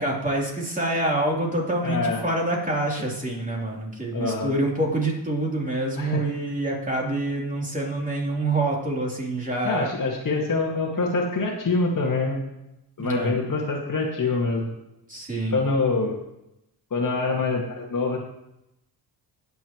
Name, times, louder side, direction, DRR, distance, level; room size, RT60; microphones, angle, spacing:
voice 1, 0.0-9.9 13.0-13.3 15.1-15.6, right 2 dB, 20° right, -3 dB, 3.4 m, -26 dB
voice 2, 1.8-2.2 4.1-4.5 6.0-6.2 9.6-12.4 13.0-14.7 15.5-16.2 16.9-18.2, left 3 dB, 45° left, 0 dB, 2.0 m, -25 dB
18.0 x 7.1 x 3.1 m, 0.86 s
cardioid pair, 90°, 44 cm